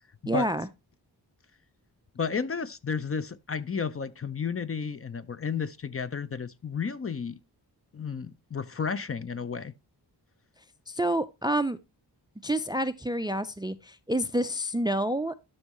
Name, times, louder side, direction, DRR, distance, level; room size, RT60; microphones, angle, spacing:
voice 1, 0.3-0.7 10.9-11.8 12.4-15.3, right 1 dB, 10° right, 0.4 m, -28 dB
voice 2, 2.2-7.4 7.9-9.7, left 5 dB, 35° left, 0.6 m, -32 dB
12.0 x 5.4 x 3.0 m
wide cardioid pair, 105°, 41 cm